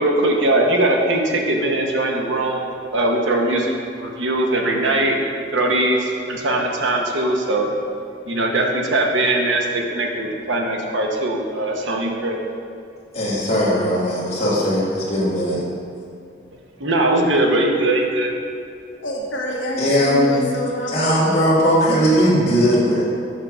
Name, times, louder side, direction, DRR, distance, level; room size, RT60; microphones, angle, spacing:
voice 1, 0.0-5.2 5.5-7.7 8.3-12.5 16.8-18.3, right 1 dB, 85° right, 1 dB, 1.0 m, -20 dB
voice 2, 13.1-15.6 19.8-20.4 20.9-23.0, equal, 35° left, -9 dB, 1.7 m, -18 dB
voice 3, 19.0-21.6 21.9-22.4, left 1 dB, 80° left, -2 dB, 1.2 m, -28 dB
5.8 x 4.6 x 6.0 m, 2.4 s
head